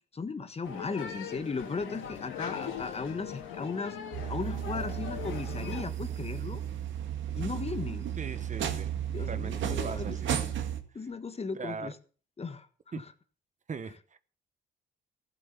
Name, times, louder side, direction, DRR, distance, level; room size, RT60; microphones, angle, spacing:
voice 1, 0.1-4.0 4.3-6.6 7.4-8.1 9.1-10.2 10.9-11.9 12.4-12.7 13.0-13.1, left 4 dB, 30° left, 10 dB, 1.5 m, -36 dB
sound 1, 0.6-5.8, left 8 dB, 85° left, 3.2 m, -40 dB
sound 2, 4.1-10.8, right 9 dB, 75° right, 2.1 m, -34 dB
voice 2, 8.2-8.9 9.2-10.3 10.9-11.1 11.5-11.9 12.9-13.0 13.7-14.2, right 5 dB, 40° right, 13 dB, 1.1 m, -40 dB
15.5 x 7.7 x 7.2 m, 0.40 s
cardioid pair, 90°, 20 cm